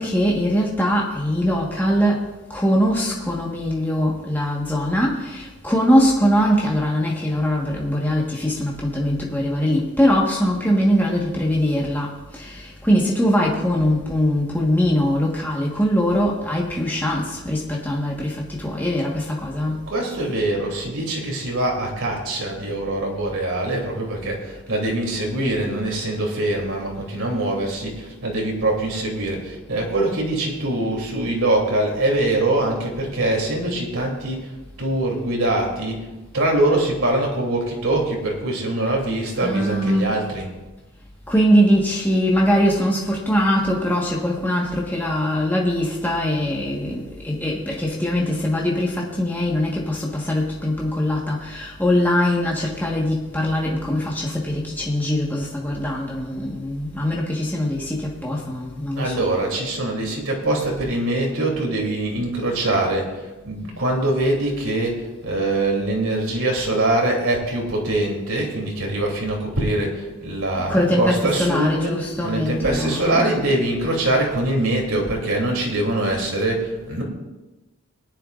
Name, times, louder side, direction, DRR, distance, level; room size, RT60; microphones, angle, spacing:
voice 1, 0.0-19.8 39.4-40.2 41.3-59.2 70.7-73.4, equal, 10° left, -3 dB, 1.4 m, -22 dB
voice 2, 19.9-34.5 34.8-36.1 36.3-40.5 58.9-72.0 72.2-77.0, right 1 dB, 70° right, 0 dB, 3.0 m, -23 dB
19.5 x 10.5 x 2.5 m, 1.1 s
head